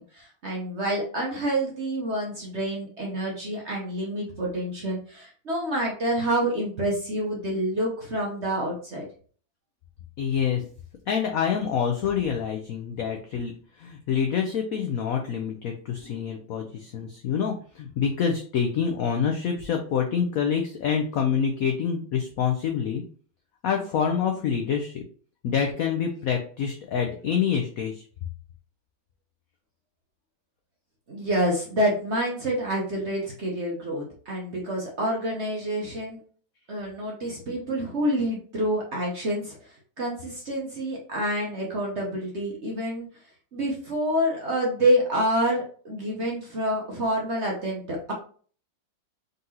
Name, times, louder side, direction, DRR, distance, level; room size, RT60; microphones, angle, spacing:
voice 1, 0.0-9.1 31.1-36.2 36.7-43.1 43.5-48.1, right 1 dB, 50° right, -2 dB, 0.9 m, -27 dB
voice 2, 10.2-10.7 11.1-13.5 13.8-23.0 23.6-25.0 25.4-28.0, left 7 dB, 75° left, 3 dB, 0.8 m, -26 dB
3.9 x 3.9 x 2.8 m, 0.44 s
omnidirectional pair, 2.1 m